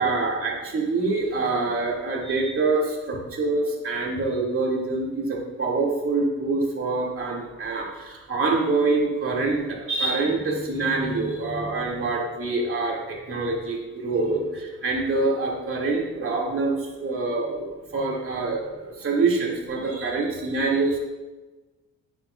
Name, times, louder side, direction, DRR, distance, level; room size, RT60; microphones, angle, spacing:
voice 1, 0.0-21.0, right 3 dB, 45° right, -3 dB, 2.7 m, -25 dB
10.0 x 9.4 x 2.6 m, 1.2 s
cardioid pair, 90°, 30 cm